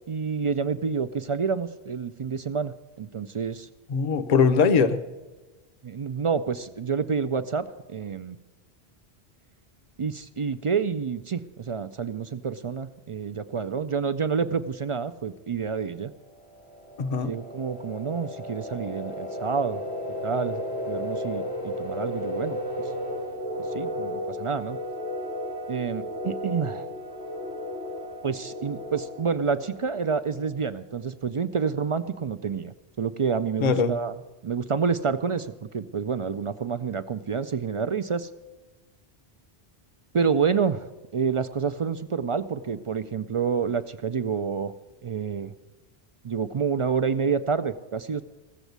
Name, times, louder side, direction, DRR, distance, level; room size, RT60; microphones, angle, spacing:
voice 1, 0.1-3.7 5.8-8.4 10.0-16.1 17.2-19.8 20.2-22.6 23.7-24.8 25.7-26.9 28.2-34.1 34.4-38.3 40.1-44.7 45.0-45.5 46.2-48.2, right 6 dB, 55° right, 12 dB, 0.3 m, -28 dB
voice 2, 3.9-5.0 17.0-17.3 33.6-33.9, left 5 dB, 45° left, 10 dB, 0.7 m, -21 dB
sound 1, 16.1-30.7, left 1 dB, 85° left, 3.5 m, -34 dB
15.0 x 7.2 x 8.0 m, 1.2 s
omnidirectional pair, 1.1 m